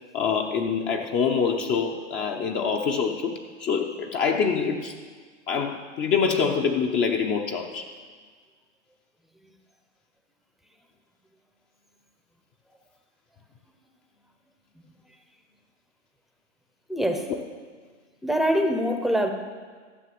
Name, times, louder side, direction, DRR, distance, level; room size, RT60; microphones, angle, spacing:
voice 1, 0.1-3.3 3.6-4.9 5.5-7.9 17.3-17.4, left 6 dB, 30° left, 2 dB, 0.9 m, -25 dB
voice 2, 16.9-17.3 18.2-19.3, equal, ahead, 5 dB, 0.8 m, -24 dB
13.5 x 6.8 x 7.7 m, 1.5 s
hypercardioid pair, 125°, 37 cm